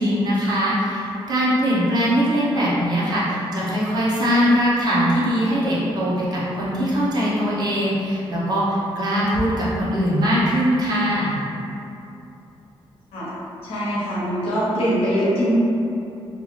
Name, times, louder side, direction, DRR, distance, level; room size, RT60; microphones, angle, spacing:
voice 1, 0.0-11.4, equal, 45° right, -7 dB, 0.7 m, -21 dB
voice 2, 13.6-15.5, equal, 85° left, -8 dB, 0.9 m, -23 dB
2.7 x 2.4 x 3.0 m, 2.7 s
wide cardioid pair, 155°, 10 cm